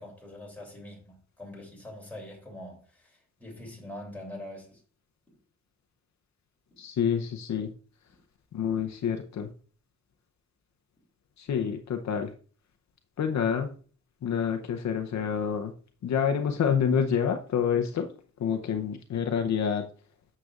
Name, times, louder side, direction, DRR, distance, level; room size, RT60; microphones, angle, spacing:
voice 1, 0.0-4.8, left 1 dB, 5° left, 3.0 m, -44 dB
voice 2, 6.8-7.7 8.5-9.5 11.4-12.3 13.2-13.7 14.2-15.7 16.0-18.1 18.4-19.8, left 7 dB, 65° left, 0.7 m, -27 dB
9.1 x 6.7 x 2.4 m
wide cardioid pair, 130°, 30 cm